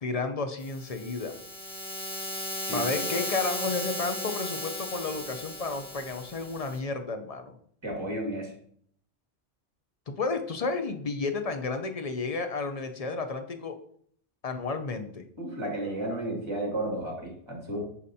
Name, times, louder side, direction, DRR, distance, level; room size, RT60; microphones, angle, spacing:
voice 1, 0.0-1.4 2.7-7.5 10.1-13.8 14.4-15.2, left 4 dB, 45° left, 7 dB, 0.5 m, -32 dB
sound 1, 0.6-6.8, left 1 dB, 20° left, 1.3 m, -36 dB
voice 2, 2.6-3.1 7.8-8.5 15.4-17.8, right 1 dB, 25° right, -1 dB, 1.9 m, -33 dB
9.8 x 4.2 x 2.7 m, 0.62 s
omnidirectional pair, 1.2 m